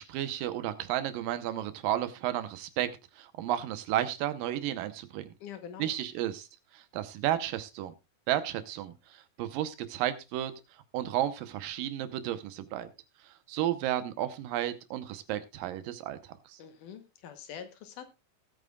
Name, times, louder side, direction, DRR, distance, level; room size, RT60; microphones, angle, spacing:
voice 1, 0.0-5.3 5.8-6.5 6.7-7.9 8.3-10.5 10.9-12.9 13.5-16.2 16.5-16.6, right 12 dB, 75° right, 11 dB, 2.5 m, -32 dB
voice 2, 5.4-5.9 16.6-18.0, left 8 dB, 70° left, 9 dB, 2.4 m, -44 dB
19.5 x 8.9 x 2.3 m, 0.24 s
omnidirectional pair, 4.2 m